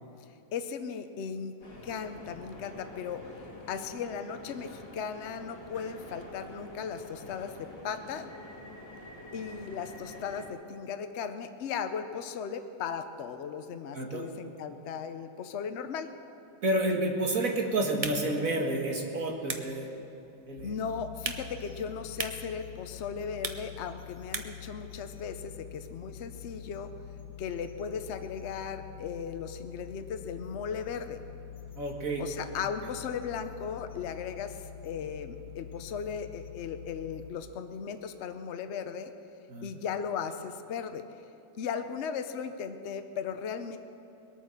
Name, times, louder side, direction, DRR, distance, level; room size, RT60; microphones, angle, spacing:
voice 1, 0.5-1.5 1.8-3.2 3.7-8.3 9.3-16.1 20.6-26.9 27.4-31.2 32.2-39.1 39.6-41.0 41.6-43.8, left 6 dB, 80° left, 8 dB, 0.6 m, -37 dB
sound 1, 1.6-10.5, left 1 dB, 55° left, 3.5 m, -47 dB
voice 2, 13.9-14.3 16.6-19.9 20.5-20.7 31.8-32.2 32.8-32.9 39.5-39.7, right 1 dB, 45° right, 1 dB, 2.1 m, -30 dB
sound 2, 17.8-24.7, right 3 dB, 60° right, 0.3 m, -42 dB
sound 3, 20.6-37.3, left 9 dB, 35° left, 1.2 m, -46 dB
22.0 x 9.0 x 6.5 m, 3.0 s
omnidirectional pair, 2.1 m